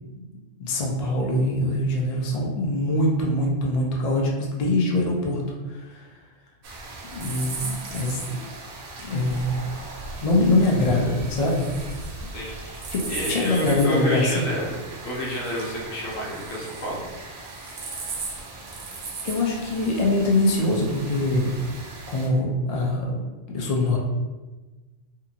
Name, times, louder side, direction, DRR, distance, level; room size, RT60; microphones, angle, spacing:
voice 1, 0.6-5.4 5.7-6.1 7.1-8.4 9.0-9.5 10.2-11.7 12.9-14.5 17.7-17.9 19.2-21.5 22.1-23.2 23.5-24.0, left 2 dB, 75° left, -2 dB, 0.3 m, -23 dB
sound 1, 6.6-22.3, right 3 dB, 60° right, 0.6 m, -37 dB
voice 2, 12.3-12.8 13.1-17.1, equal, 55° left, -4 dB, 0.8 m, -29 dB
2.7 x 2.4 x 2.7 m, 1.2 s
omnidirectional pair, 1.3 m